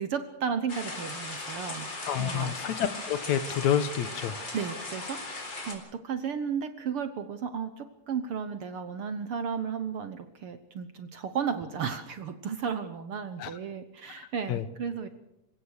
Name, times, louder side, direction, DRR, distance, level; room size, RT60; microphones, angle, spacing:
voice 1, 0.0-1.9 2.2-2.5 4.5-15.1, right 7 dB, 60° right, 10 dB, 1.5 m, -34 dB
sound 1, 0.7-5.7, left 2 dB, 35° left, 4.8 m, -38 dB
voice 2, 2.1-4.4 13.4-13.5 14.5-14.6, left 9 dB, 70° left, 13 dB, 2.2 m, -28 dB
27.0 x 16.5 x 6.6 m, 0.86 s
omnidirectional pair, 3.5 m